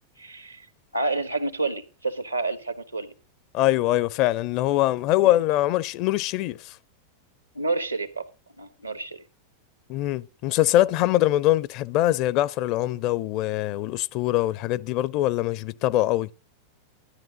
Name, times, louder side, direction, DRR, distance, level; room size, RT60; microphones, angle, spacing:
voice 1, 0.2-0.7 0.9-3.1 5.2-5.3 7.5-8.2 8.6-9.2, right 3 dB, 85° right, 1.4 m, -29 dB
voice 2, 3.5-6.8 9.9-16.3, left 15 dB, 40° left, 0.5 m, -23 dB
13.0 x 10.5 x 3.7 m
figure-of-eight pair, 90°, 0 cm